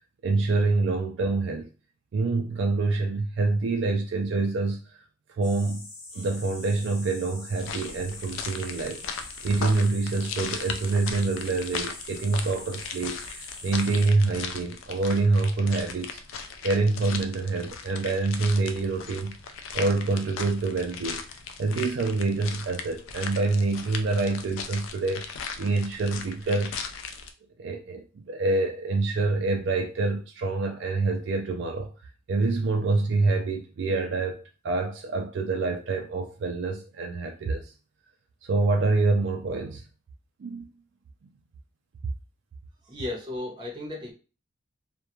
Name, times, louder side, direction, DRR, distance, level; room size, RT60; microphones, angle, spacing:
voice 1, 0.2-1.7 2.1-4.8 5.4-5.9 6.1-19.4 19.7-21.3 21.6-25.2 25.6-26.7 27.6-31.9 32.3-37.7 38.5-39.8 40.4-40.7, right 3 dB, 65° right, 0.3 m, -26 dB
sound 1, 5.4-14.1, left 2 dB, 65° left, 1.3 m, -43 dB
sound 2, 7.6-27.3, left 6 dB, 90° left, 0.4 m, -38 dB
voice 2, 42.8-44.1, left 2 dB, 25° right, 0.7 m, -34 dB
2.3 x 2.1 x 2.9 m
head